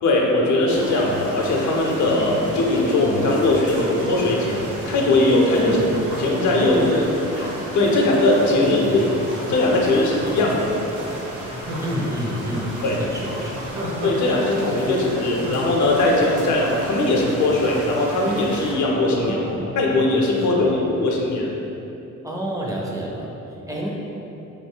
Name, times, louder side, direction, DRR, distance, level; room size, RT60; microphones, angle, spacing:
voice 1, 0.0-5.8 6.2-6.8 7.4-7.5 7.7-9.1 9.5-10.7 12.8-13.0 14.0-19.4 19.8-21.5, left 2 dB, 75° left, -2 dB, 0.6 m, -20 dB
sound 1, 0.7-18.7, equal, 90° right, 0.8 m, -34 dB
Laughter, 3.9-5.6 6.4-8.6 9.3-10.7 11.1-11.2 11.6-14.3 14.6-14.7 15.1-18.0 18.4-18.5 18.7-20.5 20.9-21.0, right 1 dB, 55° right, 0.7 m, -36 dB
voice 2, 6.6-7.2 8.6-9.0 11.8-13.6 14.9-15.0 19.2-19.5 20.4-20.9 22.2-23.9, right 1 dB, 10° right, -3 dB, 0.4 m, -28 dB
3.1 x 2.2 x 3.6 m, 2.9 s
cardioid pair, 90°, 30 cm